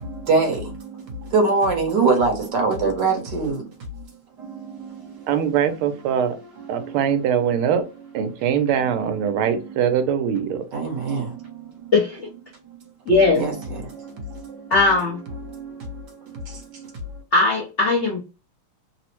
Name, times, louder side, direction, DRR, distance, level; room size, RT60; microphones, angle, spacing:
voice 1, 1.3-3.6 10.7-11.2 13.3-13.5, right 4 dB, 60° right, 1.4 m, -20 dB
voice 2, 5.3-6.4 6.7-7.8 8.1-10.6, right 8 dB, 80° right, 1.5 m, -22 dB
voice 3, 11.9-12.3 13.1-13.4 14.7-15.2 17.3-18.2, left 3 dB, 65° left, 0.7 m, -18 dB
3.8 x 2.0 x 2.9 m
omnidirectional pair, 2.4 m